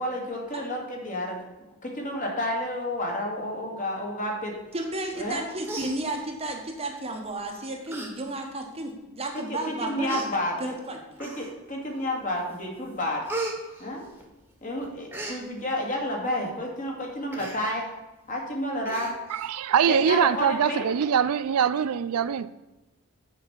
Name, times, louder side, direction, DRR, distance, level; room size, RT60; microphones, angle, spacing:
voice 1, 0.0-1.4 1.8-4.5 5.1-5.4 9.3-10.7 11.2-13.2 13.8-14.0 14.6-17.9 18.3-19.1 19.9-20.9, left 1 dB, 35° left, 2.1 m, -30 dB
voice 2, 4.7-10.2 10.6-11.0, right 2 dB, 25° right, 1.3 m, -33 dB
Human voice, 5.2-5.4 5.6-6.6 7.3-7.5 7.9-8.1 8.5-8.6 9.4-9.5 10.1-10.3 11.2-11.7 12.2-12.6 12.8-14.5 14.8-15.4 17.3-17.6 18.0-18.1 18.4-18.5 18.9-19.5 19.9-20.0, right 2 dB, 10° right, 1.6 m, -36 dB
voice 3, 19.3-22.5, right 8 dB, 80° right, 0.4 m, -23 dB
8.3 x 5.2 x 6.9 m
head